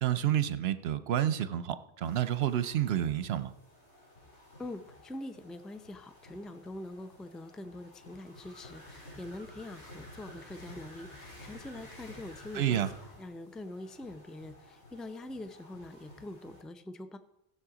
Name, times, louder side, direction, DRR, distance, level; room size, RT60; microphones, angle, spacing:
voice 1, 0.0-3.5 12.5-12.9, right 11 dB, 70° right, 13 dB, 0.9 m, -29 dB
sound 1, 2.0-16.6, left 1 dB, 85° left, 4.1 m, -53 dB
voice 2, 4.6-12.9 13.2-17.2, left 1 dB, ahead, 10 dB, 0.4 m, -44 dB
16.0 x 7.2 x 4.9 m, 0.89 s
omnidirectional pair, 1.1 m